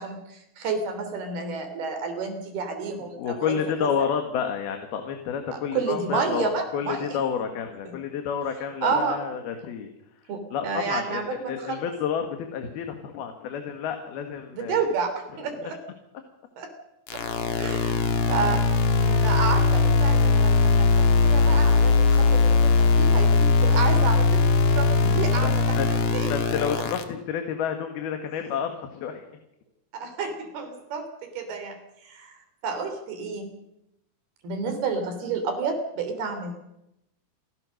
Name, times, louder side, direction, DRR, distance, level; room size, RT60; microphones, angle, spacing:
voice 1, 0.0-3.9 5.5-7.2 7.9-8.0 8.8-9.2 10.3-11.8 14.5-15.8 16.6-16.7 17.1-17.2 17.6-18.6 19.0-26.3 29.9-33.5 34.4-36.6, right 5 dB, 80° right, 7 dB, 5.3 m, -30 dB
voice 2, 3.1-9.9 10.5-14.8 15.6-15.7 25.0-25.9 26.3-29.2, left 7 dB, 80° left, 5 dB, 3.7 m, -30 dB
sound 1, 17.1-27.0, left 4 dB, 55° left, 2.7 m, -20 dB
28.0 x 16.5 x 6.6 m, 0.85 s
omnidirectional pair, 4.4 m